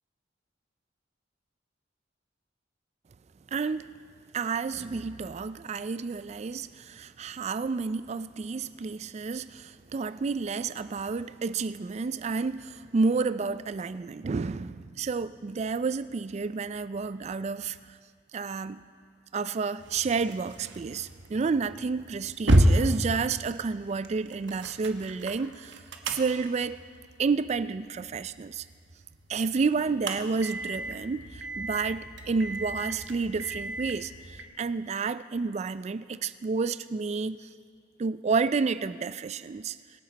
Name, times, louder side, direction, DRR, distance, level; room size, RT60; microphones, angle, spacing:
voice 1, 3.5-3.9 4.3-18.0 18.3-18.8 19.3-26.8 27.2-28.6 29.3-37.5 38.0-39.8, right 4 dB, 35° right, 14 dB, 0.3 m, -30 dB
sound 1, 19.8-34.4, right 1 dB, 70° right, 1.0 m, -32 dB
24.5 x 9.3 x 4.0 m, 2.1 s
head